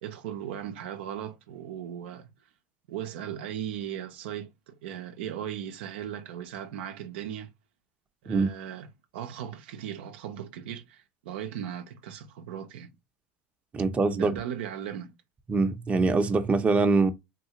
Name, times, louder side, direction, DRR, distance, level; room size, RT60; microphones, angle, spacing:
voice 1, 0.0-2.3 2.9-7.5 8.2-12.9 14.1-15.1, right 10 dB, 80° right, 0.5 m, -37 dB
voice 2, 13.7-14.3 15.5-17.1, right 3 dB, 20° right, 0.6 m, -23 dB
3.7 x 2.4 x 2.8 m
supercardioid pair, 105°, 6 cm